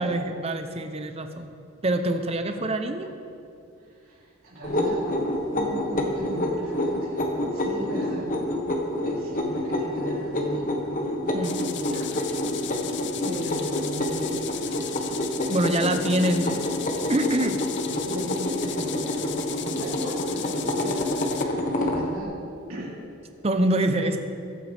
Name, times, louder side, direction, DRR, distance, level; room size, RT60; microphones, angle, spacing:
voice 1, 0.0-1.5 1.8-3.1 11.3-11.7 15.5-16.6 17.1-17.5 23.4-24.2, right 1 dB, 30° right, 7 dB, 0.7 m, -25 dB
voice 2, 3.8-5.2 5.5-7.2 7.5-8.3 9.0-10.7 11.6-12.2 12.5-15.0 15.5-16.1 16.4-16.6 17.4-17.5 17.8-22.3 22.7-22.9 23.8-24.2, equal, 85° right, -6 dB, 3.4 m, -38 dB
sound 1, 4.6-22.1, left 1 dB, 40° left, 1.4 m, -28 dB
sound 2, 11.4-21.4, left 10 dB, 55° left, 0.6 m, -37 dB
22.0 x 9.1 x 3.5 m, 2.6 s
head